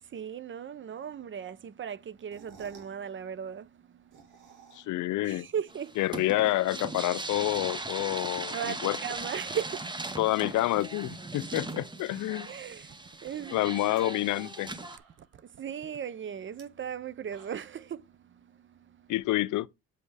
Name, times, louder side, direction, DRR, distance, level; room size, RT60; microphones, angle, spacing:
voice 1, 0.0-4.9 5.2-6.0 8.5-10.1 12.5-13.6 15.2-19.1, right 8 dB, 40° right, 0.6 m, -38 dB
sound 1, 2.2-3.0 3.9-5.1 5.4-5.5 5.7-5.8 6.0-6.1 6.4-8.6 9.0-10.1 10.5-11.8 12.0-12.6 13.0-13.1 13.7-14.0 14.5-14.6 14.8-15.4 16.5-16.6 17.1-17.9, right 5 dB, 85° right, 3.0 m, -54 dB
voice 2, 4.7-5.5 6.0-9.0 10.2-12.5 13.5-14.7 19.1-19.7, left 16 dB, 80° left, 0.5 m, -28 dB
sound 2, 5.7-15.0, right 2 dB, 15° right, 1.0 m, -39 dB
7.3 x 5.2 x 3.3 m
cardioid pair, 90°, 30 cm